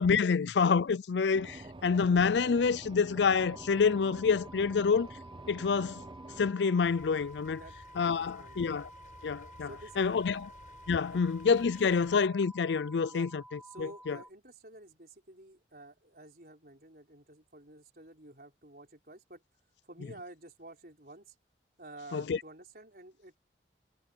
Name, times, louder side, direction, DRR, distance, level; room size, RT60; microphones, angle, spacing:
voice 1, 0.0-5.1 5.5-6.0 6.4-7.6 8.0-8.9 9.2-9.7 10.0-10.5 10.9-14.2 22.1-22.4, left 5 dB, 80° left, 0.5 m, -27 dB
sound 1, 1.3-6.5, right 2 dB, 25° right, 0.5 m, -47 dB
sound 2, 3.3-14.3, right 1 dB, 5° right, 1.7 m, -52 dB
sound 3, 6.8-12.3, left 1 dB, 45° left, 5.5 m, -54 dB
voice 2, 8.1-8.8 9.7-10.4 11.1-11.2 13.1-13.3 13.6-19.4 19.8-21.3 21.8-23.4, right 2 dB, 55° right, 4.7 m, -51 dB
head